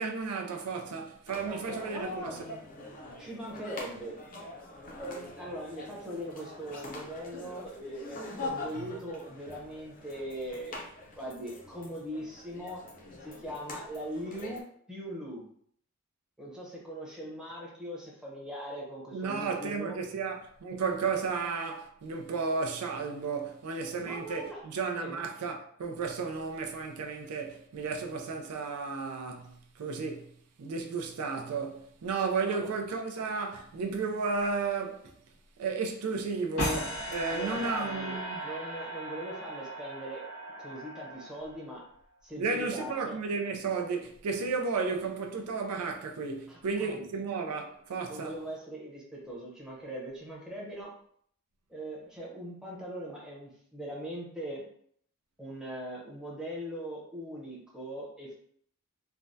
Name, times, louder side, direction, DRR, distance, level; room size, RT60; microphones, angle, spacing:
voice 1, 0.0-2.6 8.7-8.9 19.1-30.3 30.6-35.1 35.6-38.5 42.4-48.4, right 4 dB, 90° right, 0.4 m, -33 dB
sound 1, 1.3-14.6, left 2 dB, 40° left, 0.5 m, -44 dB
voice 2, 1.5-2.4 3.2-4.2 5.0-10.9 11.2-12.8 13.2-15.4 16.4-20.0 24.0-24.6 25.0-25.2 32.5-32.7 37.3-40.2 40.6-41.8 42.2-43.2 46.5-47.1 48.1-50.9 51.7-54.6 55.4-58.3, equal, 5° right, 0.7 m, -40 dB
sound 2, 36.6-41.8, equal, 80° left, 1.4 m, -37 dB
3.3 x 2.1 x 2.6 m
head